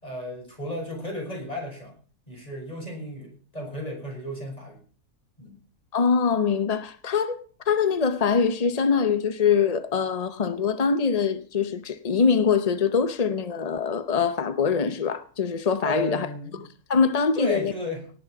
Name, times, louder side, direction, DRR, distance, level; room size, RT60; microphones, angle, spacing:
voice 1, 0.0-2.0 2.3-4.8 5.4-5.6 15.8-16.6 17.3-18.0, left 1 dB, 20° left, 6.2 m, -33 dB
voice 2, 5.9-7.4 7.7-16.3 16.9-17.7, left 6 dB, 45° left, 0.5 m, -23 dB
18.0 x 8.6 x 5.9 m
omnidirectional pair, 1.7 m